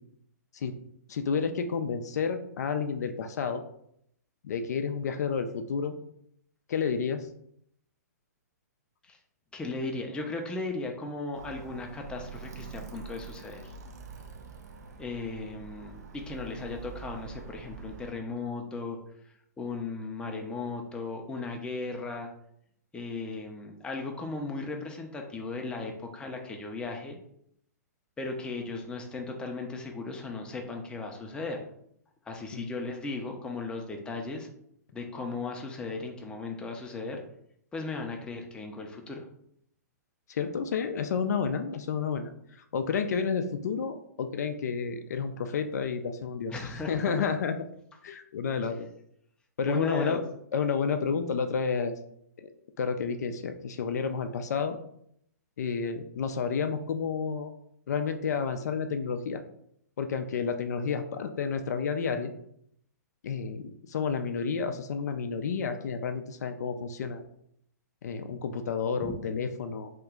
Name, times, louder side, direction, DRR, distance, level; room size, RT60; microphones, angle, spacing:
voice 1, 1.1-3.6 4.4-5.9 6.7-7.3 32.5-32.7 40.3-42.3 42.7-47.6 48.0-48.9 49.6-50.2 50.5-51.9 52.4-52.5 52.8-54.8 55.6-57.5 57.9-59.4 60.0-62.3 63.2-67.2 68.0-69.9, left 6 dB, 70° left, 8 dB, 0.4 m, -30 dB
voice 2, 9.5-13.7 15.0-19.0 19.3-22.3 22.9-27.2 28.2-31.6 32.3-34.5 34.9-37.2 37.7-39.3 46.5-47.3 49.7-50.2 69.0-69.2, left 3 dB, 10° left, 2 dB, 0.5 m, -36 dB
Alarm, 11.3-18.1, right 6 dB, 70° right, 0.5 m, -45 dB
2.9 x 2.3 x 3.5 m, 0.72 s
hypercardioid pair, 125°, 9 cm